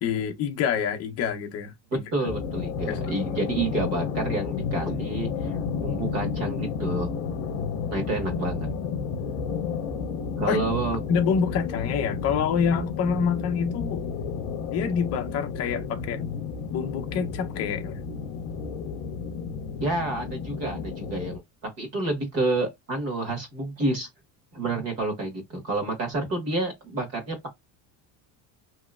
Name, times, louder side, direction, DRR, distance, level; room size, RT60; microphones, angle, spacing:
voice 1, 0.0-2.3 2.9-3.0 10.5-10.6 11.1-14.1 14.7-16.2 16.7-18.0, left 7 dB, 35° left, 0.7 m, -27 dB
voice 2, 2.1-7.1 7.9-8.7 10.4-11.0 19.8-21.4 21.8-24.1 24.5-27.5, right 2 dB, 35° right, 1.5 m, -29 dB
sound 1, 2.2-21.4, left 6 dB, 70° left, 0.8 m, -31 dB
3.0 x 2.8 x 2.3 m
cardioid pair, 175°, 43 cm